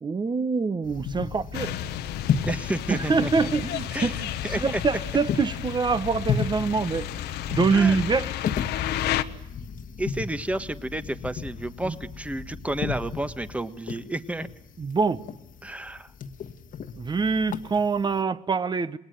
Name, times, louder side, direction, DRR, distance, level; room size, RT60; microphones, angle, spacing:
voice 1, 0.0-1.7 2.9-4.3 4.6-7.1 7.5-8.3 11.8-12.0 14.8-15.2 17.0-19.0, right 4 dB, 25° right, 1.4 m, -25 dB
sound 1, 0.8-18.2, left 7 dB, 55° left, 1.6 m, -34 dB
sound 2, 1.5-9.2, left 12 dB, 80° left, 1.3 m, -32 dB
voice 2, 2.5-3.3 3.9-4.1 4.4-4.8 7.7-8.0 10.0-14.5 15.6-16.1, right 1 dB, 10° right, 1.5 m, -31 dB
28.0 x 21.0 x 9.2 m
cardioid pair, 110°, 17 cm